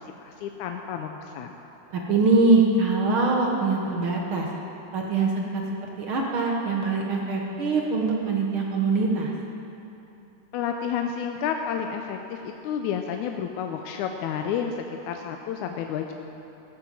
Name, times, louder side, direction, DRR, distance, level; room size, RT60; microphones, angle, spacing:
voice 1, 0.0-1.6 10.5-16.1, left 7 dB, 80° left, 4 dB, 1.9 m, -30 dB
voice 2, 1.9-4.5 4.9-5.6 6.0-9.3, right 3 dB, 60° right, -1 dB, 1.5 m, -23 dB
16.0 x 8.9 x 7.5 m, 2.9 s
omnidirectional pair, 3.8 m